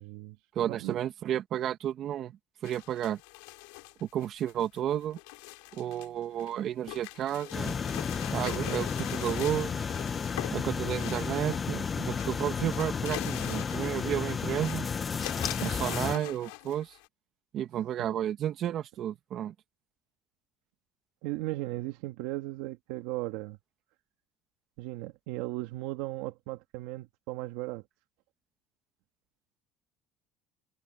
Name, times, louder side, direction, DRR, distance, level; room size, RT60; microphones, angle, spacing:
voice 1, 0.0-1.0 18.0-18.2 21.2-23.6 24.8-27.8, right 19 dB, 80° right, 2.1 m, -37 dB
voice 2, 0.6-2.3 2.6-3.2 4.0-5.2 5.7-7.7 8.3-9.9 10.5-14.9 15.6-17.0 17.5-19.5, right 11 dB, 50° right, 2.4 m, -32 dB
sound 1, 2.6-6.1 6.4-11.9 12.1-14.1 14.4-14.8 15.2-17.1, left 31 dB, 85° left, 7.1 m, -43 dB
sound 2, 7.5-16.1, left 6 dB, 30° left, 1.6 m, -32 dB
supercardioid pair, 115°, 0 cm